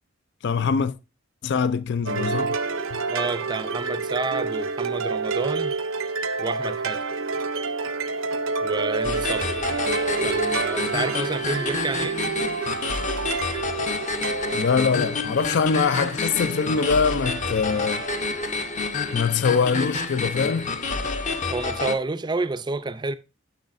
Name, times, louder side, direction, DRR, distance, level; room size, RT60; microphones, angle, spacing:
voice 1, 0.4-1.0 1.4-2.6 2.9-3.0 14.5-18.0 19.1-20.8, left 5 dB, 60° left, 0.4 m, -23 dB
sound 1, 2.1-19.9, right 4 dB, 80° right, 0.8 m, -29 dB
voice 2, 3.1-5.7 6.4-7.0 8.6-9.8 10.2-12.2 21.5-23.1, right 3 dB, 20° right, 0.5 m, -29 dB
sound 2, 9.0-22.0, left 4 dB, 40° left, 0.8 m, -29 dB
10.5 x 6.4 x 2.5 m
head